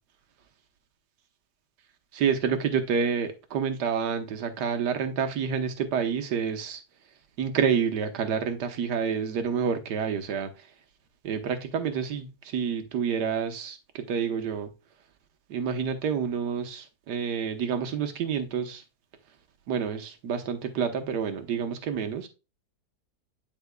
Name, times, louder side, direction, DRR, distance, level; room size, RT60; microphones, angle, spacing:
voice 1, 2.1-6.8 7.4-10.7 11.2-14.7 15.5-18.8 19.7-22.3, right 7 dB, 85° right, 1.6 m, -28 dB
12.0 x 4.2 x 2.2 m
omnidirectional pair, 1.8 m